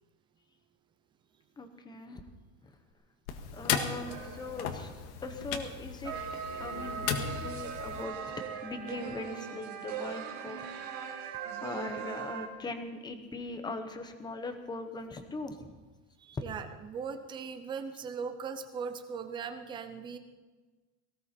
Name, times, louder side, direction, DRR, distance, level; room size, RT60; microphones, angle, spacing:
voice 1, 1.6-2.2 3.5-4.9 5.2-6.1 6.6-8.2 8.6-10.6 11.6-15.7 16.3-16.4, left 3 dB, 10° left, 7 dB, 0.8 m, -40 dB
sound 1, 3.3-8.0, left 7 dB, 85° left, 2.0 m, -36 dB
voice 2, 3.4-3.9 6.5-6.9 16.2-20.2, right 6 dB, 10° right, 8 dB, 0.5 m, -40 dB
sound 2, 4.1-4.8 6.0-12.5, right 7 dB, 45° right, 1.9 m, -40 dB
18.5 x 17.0 x 4.3 m, 1.3 s
cardioid pair, 180°, 44 cm